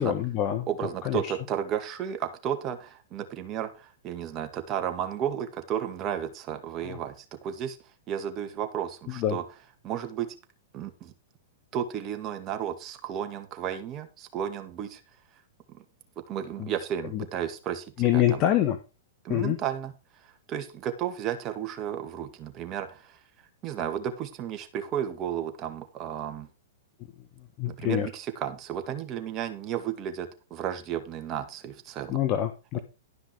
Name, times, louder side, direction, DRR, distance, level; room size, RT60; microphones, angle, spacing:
voice 1, 0.0-0.7 1.0-1.3 6.8-7.0 9.1-9.4 16.6-16.7 17.1-17.2 18.0-18.8 19.3-19.6 27.6-28.1 32.1-32.8, left 12 dB, 40° left, 8 dB, 1.3 m, -26 dB
voice 2, 0.7-7.8 8.1-9.4 9.8-10.4 10.7-11.1 11.7-15.0 15.7-15.8 16.3-17.9 18.1-18.4 19.2-19.9 20.2-23.2 23.6-26.5 27.7-32.2 32.7-32.8, right 9 dB, 35° right, 6 dB, 2.1 m, -33 dB
12.5 x 5.6 x 4.8 m, 0.30 s
hypercardioid pair, 115°, 0 cm